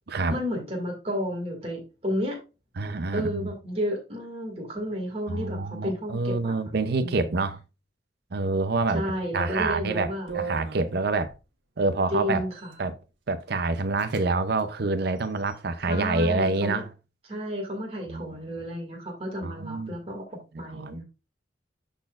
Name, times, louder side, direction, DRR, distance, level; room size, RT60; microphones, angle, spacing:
voice 1, 0.3-2.4 3.1-6.6 7.0-7.4 8.9-10.4 12.1-12.7 15.8-16.8 17.3-21.0, equal, 35° right, 2.1 m, -32 dB
voice 2, 2.8-3.5 5.3-7.6 8.3-9.0 9.3-11.3 11.8-12.4 12.8-13.0 13.3-16.9 18.1-18.3 19.4-19.9 20.5-21.0, right 3 dB, 60° right, 0.6 m, -27 dB
sound 1, 9.5-9.7 10.3-11.4 12.4-12.8 13.4-13.5 13.7-14.3 14.5-14.7 15.2-15.8, right 5 dB, 85° right, 1.4 m, -39 dB
12.0 x 4.2 x 2.4 m
head